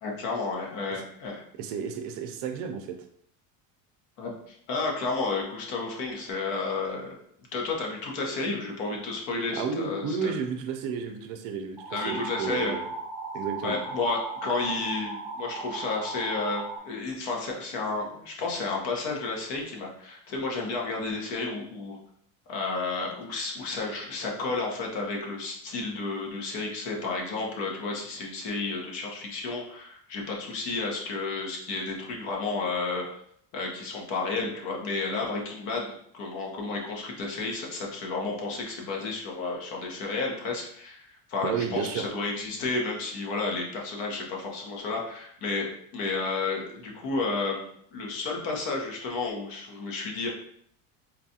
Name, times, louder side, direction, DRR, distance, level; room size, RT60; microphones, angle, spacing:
voice 1, 0.0-1.4 4.2-7.2 7.5-10.3 11.9-12.8 13.6-22.0 22.5-33.1 33.5-47.6 47.9-50.3, left 3 dB, 60° left, 0 dB, 1.0 m, -32 dB
voice 2, 1.6-2.9 9.6-12.8 13.3-13.8 41.4-42.0, right 6 dB, 55° right, 5 dB, 0.5 m, -32 dB
sound 1, 11.8-16.8, right 3 dB, ahead, 0.3 m, -36 dB
4.1 x 2.3 x 2.7 m, 0.67 s
cardioid pair, 160°, 40 cm